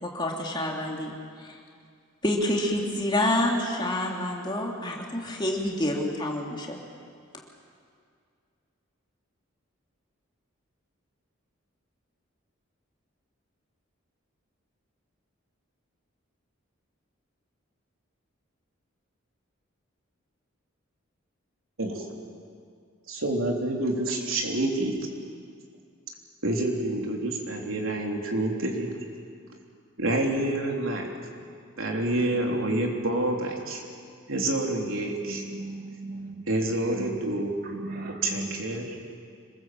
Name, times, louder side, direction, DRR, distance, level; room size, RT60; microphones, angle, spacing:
voice 1, 0.0-1.1 1.4-1.6 2.2-6.8, left 1 dB, 20° left, -1 dB, 2.9 m, -28 dB
voice 2, 23.1-24.9 26.4-28.9 30.0-31.1 31.8-33.8 34.3-35.4 36.5-37.6 38.2-39.0, right 1 dB, 80° right, 0 dB, 3.6 m, -28 dB
voice 3, 35.2-36.5 37.0-37.3 37.6-39.0, right 2 dB, 45° right, 3 dB, 2.1 m, -38 dB
26.0 x 20.5 x 7.8 m, 2.2 s
head